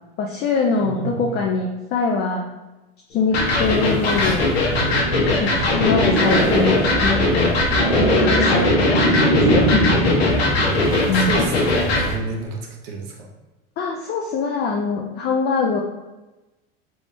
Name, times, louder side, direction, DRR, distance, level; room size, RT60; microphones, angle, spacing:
voice 1, 0.2-2.5 3.1-4.5 5.4-7.6 7.9-9.9 11.1-11.3 13.8-15.8, left 4 dB, 35° left, 0 dB, 0.4 m, -23 dB
voice 2, 0.8-1.4 4.1-5.0 5.4-5.9 9.9-10.0 10.9-13.3, right 4 dB, 70° right, 1 dB, 0.9 m, -31 dB
Electric guitar, 3.3-12.1, left 2 dB, 90° left, 1.0 m, -20 dB
sound 1, 3.3-12.1, right 1 dB, 30° right, 1.0 m, -23 dB
3.5 x 3.0 x 2.6 m, 1.1 s
hypercardioid pair, 105°, 30 cm